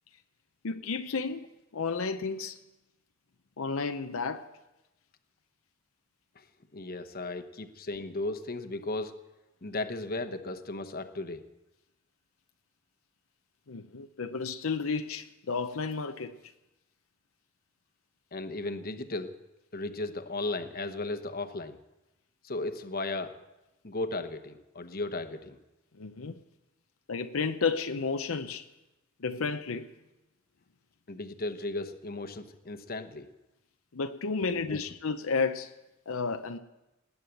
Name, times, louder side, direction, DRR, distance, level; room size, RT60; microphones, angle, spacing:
voice 1, 0.6-1.5 1.7-2.6 3.6-4.5 13.7-16.4 25.9-26.4 27.1-28.6 29.2-29.9 33.9-35.7 36.1-36.6, left 4 dB, 80° left, 0.7 m, -32 dB
voice 2, 6.7-9.1 9.6-11.5 18.3-19.3 19.7-21.8 22.4-23.4 23.8-25.6 31.1-33.3 34.4-34.8, left 2 dB, 45° left, 1.1 m, -35 dB
20.0 x 9.4 x 7.8 m
head